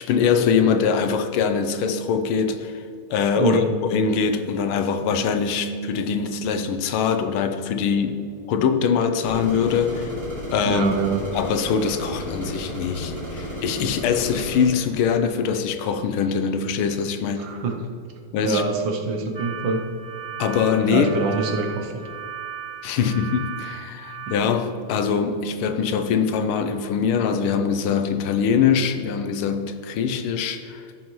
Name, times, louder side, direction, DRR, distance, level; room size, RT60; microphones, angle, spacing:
voice 1, 0.0-2.8 3.1-10.1 10.5-10.8 11.3-17.5 18.3-18.6 20.4-21.1 22.8-30.8, left 6 dB, 85° left, 8 dB, 1.6 m, -23 dB
voice 2, 3.4-3.8 10.6-11.2 17.4-17.8 18.4-19.8 20.9-22.0, right 4 dB, 70° right, 3 dB, 1.6 m, -25 dB
sound 1, 9.2-14.7, equal, 25° right, 2.8 m, -33 dB
sound 2, 19.3-24.3, right 8 dB, 45° right, 0.6 m, -36 dB
15.0 x 6.4 x 3.1 m, 2.3 s
omnidirectional pair, 2.3 m